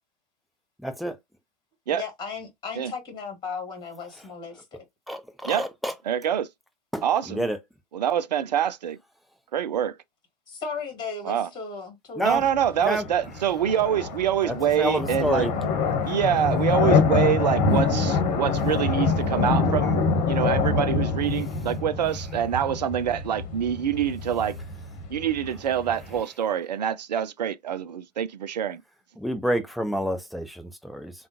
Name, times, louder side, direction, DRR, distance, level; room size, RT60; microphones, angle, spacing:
voice 1, 0.8-1.2 5.1-5.9 6.9-7.0 7.3-7.6 12.2-12.4 12.8-13.0 14.4-15.5 29.2-31.1, equal, ahead, 0.5 m, -28 dB
voice 2, 1.9-4.8 10.5-12.5, left 5 dB, 20° left, 1.6 m, -36 dB
voice 3, 6.0-6.5 7.0-7.5 7.9-9.0 9.5-10.0 11.2-11.5 12.2-15.5 16.1-24.6 25.1-28.8, right 9 dB, 75° right, 0.5 m, -26 dB
sound 1, 12.3-26.2, left 4 dB, 40° left, 1.2 m, -25 dB
3.6 x 2.3 x 2.7 m
figure-of-eight pair, 95°, 21 cm